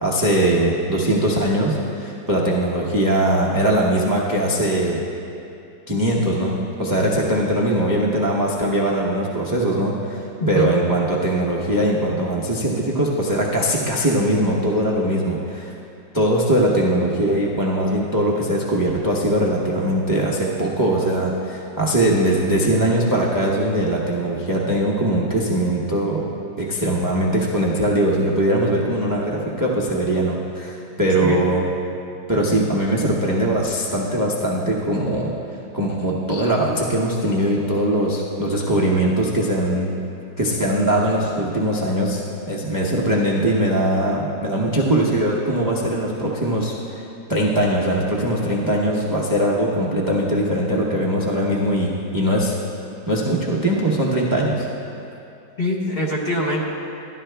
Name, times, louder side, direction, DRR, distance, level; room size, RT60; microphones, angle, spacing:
voice 1, 0.0-5.0 5.9-6.5 6.8-15.7 16.1-26.2 26.6-31.6 32.3-35.3 35.7-39.9 40.4-42.2 42.5-47.0 47.3-52.6 53.1-54.7, right 1 dB, 25° right, -4 dB, 0.4 m, -21 dB
voice 2, 10.4-10.7 31.2-31.4 55.6-56.6, equal, 40° left, -3 dB, 1.0 m, -23 dB
13.0 x 11.0 x 3.4 m, 2.8 s
omnidirectional pair, 2.0 m